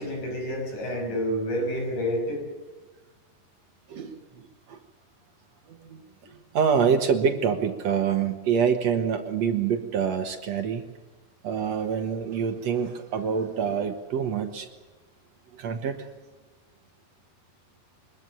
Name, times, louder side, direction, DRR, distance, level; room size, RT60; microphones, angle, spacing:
voice 1, 0.0-2.4, equal, 85° left, 2 dB, 7.6 m, -29 dB
voice 2, 3.9-4.4 4.7-4.8 5.7-6.0 6.5-10.9 11.4-14.7 15.5-16.1, right 7 dB, 65° right, 6 dB, 2.5 m, -26 dB
24.0 x 21.5 x 7.0 m, 1.2 s
omnidirectional pair, 3.5 m